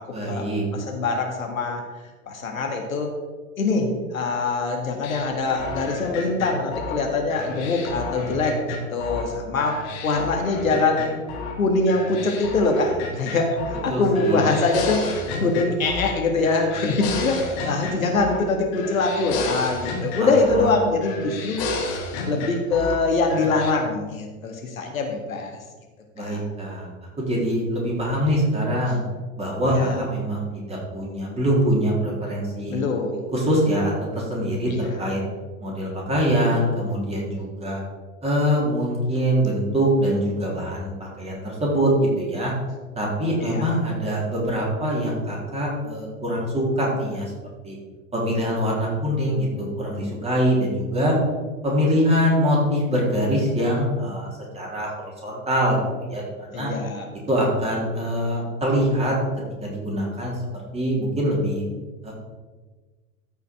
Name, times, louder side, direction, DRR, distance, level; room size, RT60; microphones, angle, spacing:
voice 1, 0.1-0.6 13.9-14.4 20.2-20.7 26.1-26.9 27.2-29.0 29.4-32.8 33.3-35.2 35.6-37.8 38.2-42.5 43.0-47.3 47.6-47.8 48.1-51.1 51.6-54.9 55.2-55.8 56.1-56.7 57.3-59.2 59.6-60.3 60.7-61.6 62.0-62.1, equal, 15° right, -4 dB, 3.7 m, -24 dB
voice 2, 0.7-1.8 2.3-3.1 3.6-8.6 8.9-11.1 11.6-21.6 22.3-25.6 26.2-26.4 29.6-30.0 32.7-33.2 34.7-35.1 43.4-43.8 56.5-57.1, left 3 dB, 70° left, 2 dB, 1.8 m, -23 dB
sound 1, 5.0-9.3 9.6-11.6 11.9-13.9 14.1-16.2 16.4-18.5 18.7-20.7 21.0-23.0 23.3-23.7, left 3 dB, 45° left, 2.0 m, -32 dB
13.5 x 5.8 x 4.7 m, 1.3 s
figure-of-eight pair, 90°, 43 cm